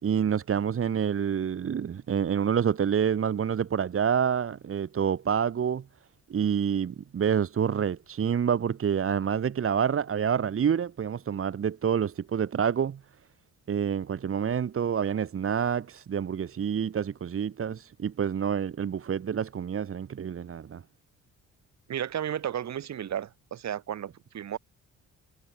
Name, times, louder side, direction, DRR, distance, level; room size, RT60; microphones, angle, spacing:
voice 1, 0.0-5.8 6.3-13.0 13.7-20.8, right 8 dB, 45° right, 1.8 m, -27 dB
voice 2, 21.9-24.6, right 10 dB, 65° right, 3.8 m, -33 dB
cardioid pair, 90°, 30 cm